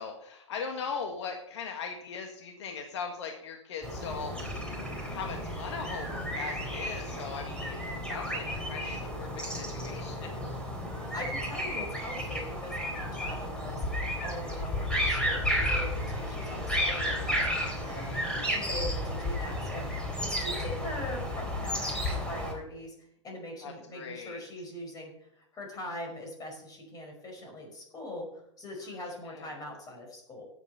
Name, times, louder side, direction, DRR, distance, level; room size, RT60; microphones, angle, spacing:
voice 1, 0.0-4.3 5.1-10.3 11.0-11.1 17.6-18.7 23.6-24.4 29.2-29.6, left 5 dB, 70° left, 3 dB, 1.7 m, -40 dB
sound 1, 3.8-22.5, equal, 5° left, 4.1 m, -33 dB
voice 2, 10.9-13.8 14.2-18.2 18.4-22.9 23.2-28.3 28.6-30.4, left 1 dB, 25° left, 1 dB, 5.3 m, -42 dB
13.0 x 8.3 x 5.6 m, 0.74 s
hypercardioid pair, 110°, 15 cm